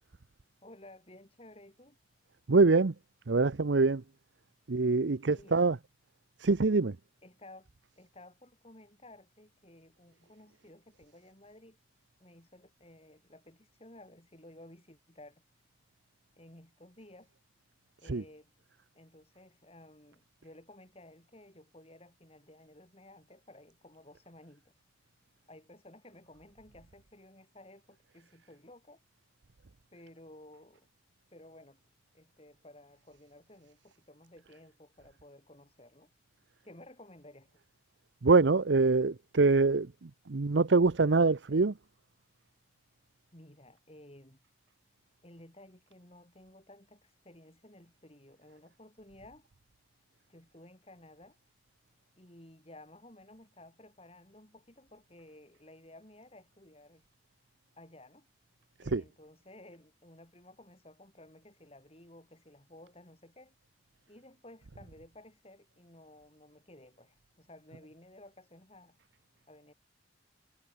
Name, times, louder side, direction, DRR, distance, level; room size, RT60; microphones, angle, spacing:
voice 1, 0.6-2.0 5.3-5.6 7.2-7.7 8.0-11.8 12.2-15.4 16.4-17.3 18.0-18.5 18.9-24.8 25.5-29.0 29.9-30.9 31.3-31.8 32.1-36.1 36.6-37.5 43.3-44.4 45.2-49.5 50.3-51.4 52.2-57.0 57.7-58.3 58.8-63.5 64.1-69.0 69.5-69.7, left 1 dB, 30° left, 4.8 m, -55 dB
voice 2, 2.5-2.9 3.3-4.0 4.7-5.8 6.4-7.0 18.1-18.2 38.2-41.7 58.9-59.0, right 3 dB, 75° right, 0.7 m, -25 dB
head